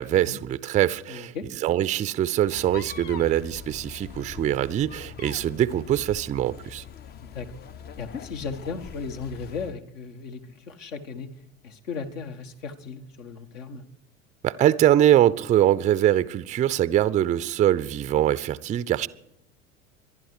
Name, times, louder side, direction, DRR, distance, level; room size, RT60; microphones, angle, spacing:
voice 1, 0.0-1.3 1.6-6.8 14.4-19.1, right 12 dB, 20° right, 0.5 m, -23 dB
voice 2, 1.1-1.5 7.2-7.6 8.0-11.3 11.6-13.9, left 5 dB, 65° left, 1.8 m, -36 dB
sound 1, 2.5-9.8, left 8 dB, 25° left, 0.6 m, -42 dB
25.5 x 11.5 x 4.8 m
figure-of-eight pair, 80°, 42 cm